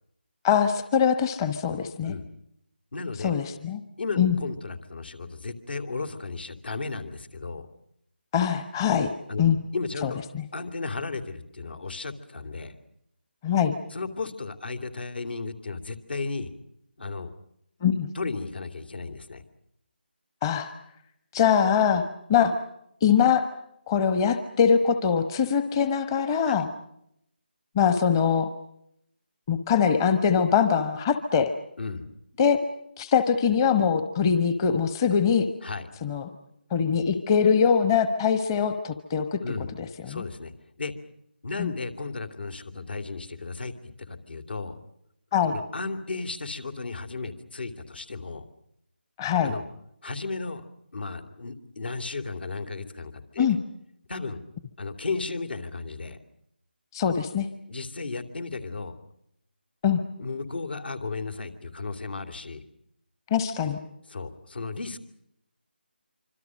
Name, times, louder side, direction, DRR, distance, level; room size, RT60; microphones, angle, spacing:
voice 1, 0.4-2.1 3.2-3.8 4.2-4.4 8.3-9.1 9.4-9.6 10.0-10.4 13.4-13.7 17.8-18.1 20.4-20.7 21.3-22.0 22.3-22.5 23.0-23.5 23.9-26.7 27.7-28.5 29.5-31.5 32.4-32.6 33.0-35.5 36.0-36.3 36.7-39.4 40.1-40.2 41.6-41.7 45.3-45.5 49.2-49.5 53.4-53.6 56.9-57.5 59.8-60.0 63.3-63.8, left 7 dB, 20° left, 9 dB, 1.2 m, -23 dB
voice 2, 2.9-3.4 4.0-7.7 9.3-9.4 9.7-10.2 10.5-12.7 13.9-16.5 17.0-17.3 18.1-19.4 26.4-26.6 31.8-32.0 35.6-35.9 39.4-39.7 40.1-40.5 40.8-40.9 41.4-44.8 45.5-48.4 49.4-49.6 50.0-50.6 50.9-53.6 54.1-54.4 54.8-56.2 57.7-58.9 60.2-62.6 64.1-65.0, left 3 dB, 65° left, 9 dB, 3.1 m, -34 dB
26.0 x 26.0 x 6.4 m, 0.76 s
figure-of-eight pair, 160°, 6 cm